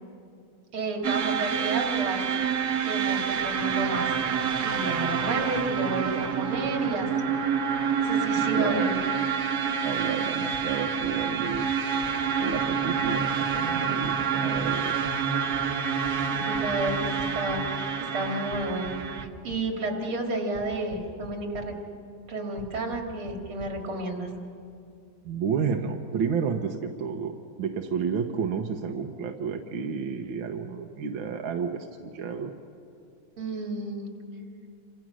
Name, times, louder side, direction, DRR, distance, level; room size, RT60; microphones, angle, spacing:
voice 1, 0.7-2.2 2.9-4.3 4.6-7.1 8.0-9.0 16.2-21.8 22.3-24.3 33.4-34.1, right 2 dB, 90° right, 2 dB, 3.5 m, -31 dB
sound 1, 1.0-19.2, right 7 dB, 50° right, 1.6 m, -27 dB
voice 2, 8.6-8.9 9.8-11.7 12.4-15.1 25.2-32.5, right 6 dB, 70° right, 3 dB, 1.8 m, -31 dB
sound 2, 10.5-10.6 11.0-11.1 11.5-11.6 12.0-12.1 12.5-12.6 13.0-13.1 13.5-13.6 14.0-14.1 14.5-14.6 15.0-15.1 15.5-15.6 16.0-16.1 16.5-17.5 18.5-19.6 20.5-20.6 20.9-21.3 21.5-21.6 22.6-22.7 22.9-23.0 23.3-23.4 23.6-23.7, right 2 dB, 60° left, 5.6 m, -43 dB
29.0 x 26.0 x 6.3 m, 2.6 s
omnidirectional pair, 2.3 m